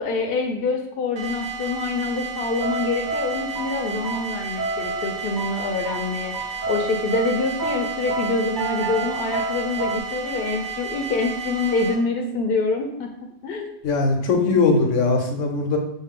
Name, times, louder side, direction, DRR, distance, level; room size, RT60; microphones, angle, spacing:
voice 1, 0.0-13.1 13.4-13.7, left 3 dB, 60° left, 2 dB, 0.7 m, -25 dB
sound 1, 1.2-11.9, right 6 dB, 85° right, 1.3 m, -33 dB
sound 2, 2.6-10.0, right 3 dB, 65° right, 0.4 m, -30 dB
voice 2, 13.8-15.8, left 3 dB, 80° left, 4 dB, 1.1 m, -20 dB
6.2 x 2.1 x 3.6 m, 0.74 s
omnidirectional pair, 1.3 m